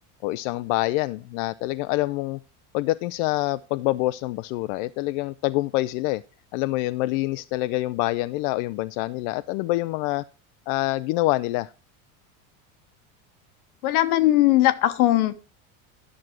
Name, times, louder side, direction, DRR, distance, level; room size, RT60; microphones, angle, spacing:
voice 1, 0.2-2.4 2.7-6.2 6.5-10.2 10.7-11.7, left 18 dB, 70° left, 0.5 m, -26 dB
voice 2, 13.8-15.4, left 15 dB, 85° left, 1.1 m, -19 dB
11.0 x 6.3 x 4.5 m
supercardioid pair, 100°, 43 cm